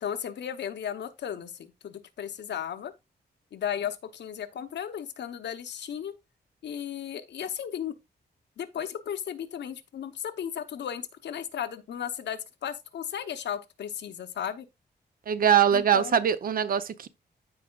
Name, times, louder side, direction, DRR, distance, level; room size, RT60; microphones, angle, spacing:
voice 1, 0.0-2.9 3.5-6.1 6.6-7.9 8.6-14.7 15.7-16.2, left 9 dB, 80° left, 0.9 m, -35 dB
voice 2, 15.3-17.1, right 8 dB, 55° right, 0.6 m, -22 dB
14.0 x 4.8 x 2.3 m
wide cardioid pair, 175°, 18 cm